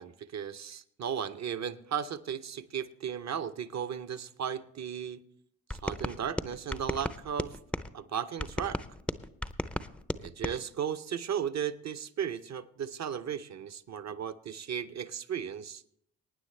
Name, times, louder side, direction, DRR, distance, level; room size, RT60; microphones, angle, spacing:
voice 1, 0.0-5.2 5.7-7.6 7.9-8.8 10.2-15.8, right 8 dB, 40° right, 0.8 m, -35 dB
sound 1, 5.7-7.9 8.4-10.6, left 1 dB, 5° left, 0.5 m, -35 dB
23.0 x 9.5 x 3.2 m
hypercardioid pair, 50°, 43 cm